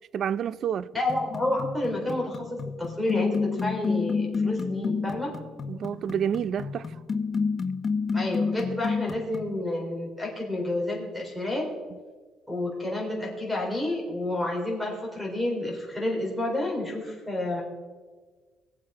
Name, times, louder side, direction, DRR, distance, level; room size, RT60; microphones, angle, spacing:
voice 1, 0.1-0.9 5.7-6.9, right 8 dB, 50° right, 0.4 m, -29 dB
voice 2, 0.9-5.3 8.1-11.7 12.5-17.6, left 1 dB, ahead, 4.1 m, -30 dB
sound 1, 1.1-9.6, left 5 dB, 35° left, 0.7 m, -30 dB
21.5 x 7.7 x 5.0 m
cardioid pair, 135°, 0 cm